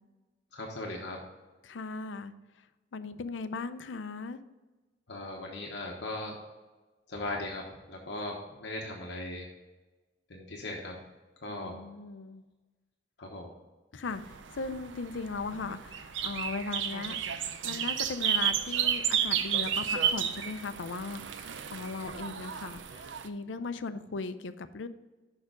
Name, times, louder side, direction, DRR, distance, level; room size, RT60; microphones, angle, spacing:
voice 1, 0.5-1.2 5.1-6.3 7.1-9.5 10.3-11.0 11.4-11.8 13.2-13.5, left 2 dB, 65° left, -1 dB, 1.1 m, -38 dB
voice 2, 1.6-2.3 2.9-4.4 11.5-12.4 13.9-17.2 17.6-24.9, left 4 dB, 85° left, 11 dB, 0.5 m, -38 dB
sound 1, 14.1-23.3, right 8 dB, 80° right, 0.6 m, -32 dB
6.7 x 5.8 x 5.0 m, 1.2 s
head